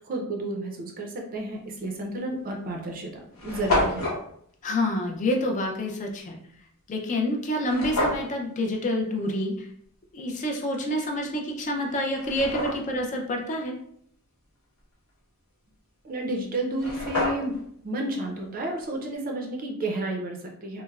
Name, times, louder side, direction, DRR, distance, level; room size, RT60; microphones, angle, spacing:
voice 1, 0.0-3.1 3.4-4.1 16.0-20.8, right 1 dB, 40° right, 2 dB, 0.5 m, -31 dB
sound 1, 1.8-2.0 2.7-2.8 3.0-3.1 3.3-4.2 7.6-8.3 11.2-11.3 11.9-13.0 16.4-16.5 16.7-17.7, left 1 dB, 75° left, 1.0 m, -28 dB
voice 2, 4.6-6.4 6.9-9.7 10.1-13.8, left 1 dB, 35° left, 2 dB, 0.3 m, -28 dB
3.2 x 2.0 x 2.2 m, 0.66 s
head